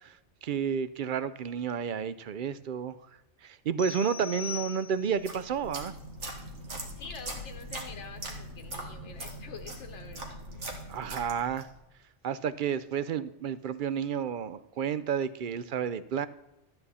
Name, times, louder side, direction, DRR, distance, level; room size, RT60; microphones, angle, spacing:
voice 1, 0.4-3.0 3.4-5.9 10.7-11.7 12.2-16.3, right 7 dB, 60° right, 15 dB, 0.6 m, -31 dB
sound 1, 3.8-5.3, left 7 dB, 30° left, 1.5 m, -40 dB
sound 2, 5.0-11.8, right 1 dB, 80° right, 2.0 m, -41 dB
voice 2, 7.0-10.4, left 5 dB, 75° left, 5 dB, 1.1 m, -46 dB
13.0 x 8.8 x 4.2 m, 0.94 s
omnidirectional pair, 1.2 m